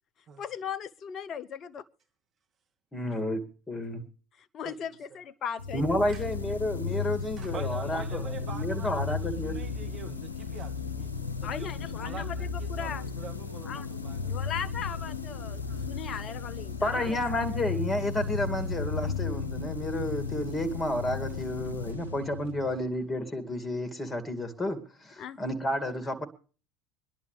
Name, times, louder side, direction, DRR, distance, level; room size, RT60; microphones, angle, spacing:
voice 1, 0.4-1.8 4.4-6.0 11.4-13.0 13.7-13.9 14.2-17.4 25.2-25.4, left 7 dB, 45° left, 0.8 m, -38 dB
voice 2, 2.9-3.4 3.7-4.0 5.7-8.2 8.5-9.6 10.1-10.2 16.8-26.2, left 1 dB, 20° left, 2.4 m, -31 dB
voice 3, 4.6-5.2 6.1-6.2 7.4-11.1 11.4-14.5 15.6-15.9 22.0-22.1, right 5 dB, 40° right, 2.1 m, -45 dB
sound 1, 5.6-23.1, left 5 dB, 90° left, 0.8 m, -35 dB
25.0 x 11.0 x 3.3 m
hypercardioid pair, 70°, 0 cm